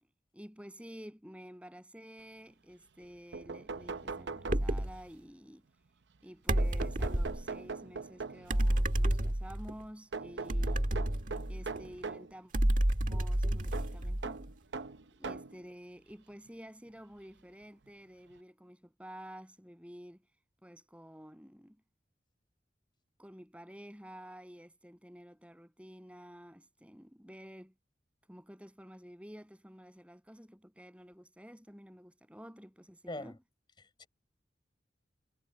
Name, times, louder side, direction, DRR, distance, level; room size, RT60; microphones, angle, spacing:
voice 1, 0.3-5.6 6.2-10.8 11.5-12.5 13.1-14.5 15.2-20.2 20.6-21.8 23.2-27.7 28.3-33.4, equal, 5° right, 7.6 m, -51 dB
sound 1, 3.0-3.1 3.3-5.1 6.6-8.6 10.1-12.3 13.7-15.6 16.5-16.6 17.9-18.0 18.3-18.4, right 4 dB, 80° right, 0.7 m, -41 dB
sound 2, 4.5-5.0 6.5-7.4 8.5-9.7 10.5-11.9 12.5-14.4, right 1 dB, 45° right, 1.7 m, -30 dB
voice 2, 33.1-33.4 33.8-34.1, left 1 dB, 25° left, 4.3 m, -44 dB
head